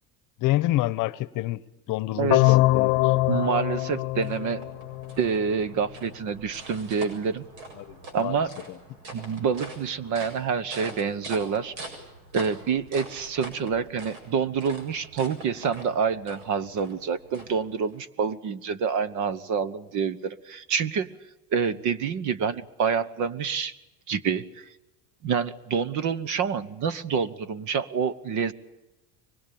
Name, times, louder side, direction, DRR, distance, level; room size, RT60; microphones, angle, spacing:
voice 1, 0.4-1.6 1.9-3.2 7.8-8.4, left 17 dB, 45° left, 1.0 m, -28 dB
voice 2, 2.2-2.5 3.3-4.7 5.2-7.4 8.1-8.5 9.1-11.7 12.3-21.1 21.5-23.7 24.1-24.7 25.2-28.5, right 6 dB, 45° right, 1.2 m, -27 dB
sound 1, 2.3-5.3, left 20 dB, 85° left, 0.9 m, -23 dB
sound 2, 3.8-18.0, right 2 dB, 75° right, 7.5 m, -44 dB
24.5 x 21.5 x 8.7 m
cardioid pair, 150°, 43 cm